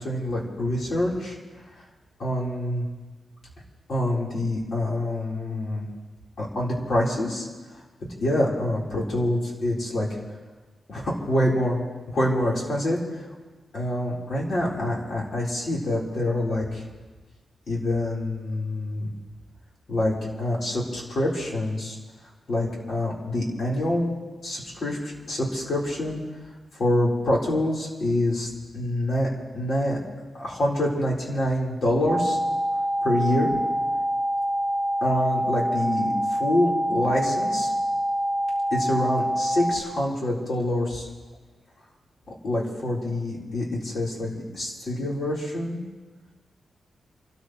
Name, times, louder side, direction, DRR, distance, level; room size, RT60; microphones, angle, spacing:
voice 1, 0.0-1.4 1.8-1.9 2.2-2.8 3.9-5.8 6.4-7.5 8.2-10.1 10.9-11.8 12.1-13.2 13.7-16.9 17.7-19.1 19.9-22.0 22.5-24.1 24.4-26.2 26.7-29.3 29.5-30.0 30.3-32.4 33.0-33.5 35.0-37.7 38.7-41.1 42.4-45.8, left 1 dB, 50° left, -4 dB, 4.2 m, -26 dB
sound 1, 32.1-39.8, equal, 15° left, 4.1 m, -26 dB
29.0 x 13.0 x 3.2 m, 1.3 s
wide cardioid pair, 140°, 0 cm